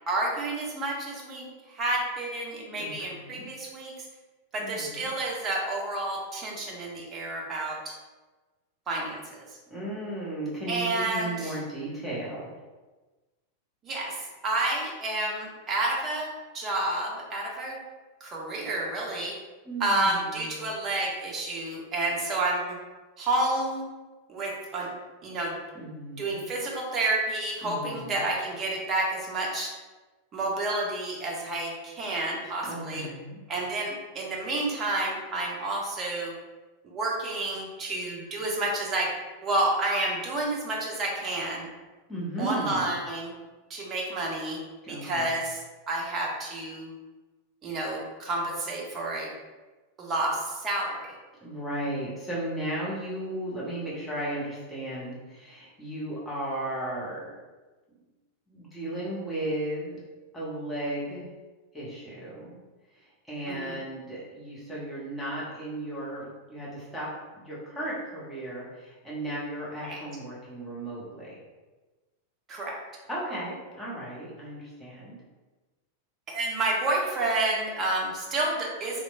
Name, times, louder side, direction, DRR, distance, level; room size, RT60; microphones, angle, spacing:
voice 1, 0.1-4.1 4.5-8.0 8.9-9.6 10.7-11.6 13.8-17.8 18.2-19.3 19.8-22.8 23.2-23.9 24.3-24.9 25.2-25.6 26.2-29.7 30.3-33.1 33.5-36.3 36.8-39.1 39.4-41.7 42.4-43.3 43.7-44.6 44.9-45.6 45.9-46.9 47.6-49.3 50.0-51.1 63.5-63.8 69.8-70.0 72.5-72.8 76.3-79.0, right 2 dB, 25° right, -2 dB, 0.6 m, -30 dB
voice 2, 2.8-3.5 4.6-5.1 9.7-12.5 19.6-20.7 25.7-26.4 27.6-28.2 32.7-33.4 42.1-42.9 44.8-45.3 51.4-57.3 58.5-60.0 60.3-61.3 61.7-62.5 63.0-71.4 73.1-75.1, right 1 dB, 5° left, -8 dB, 0.8 m, -35 dB
2.9 x 2.1 x 2.5 m, 1.2 s
figure-of-eight pair, 90°, 0 cm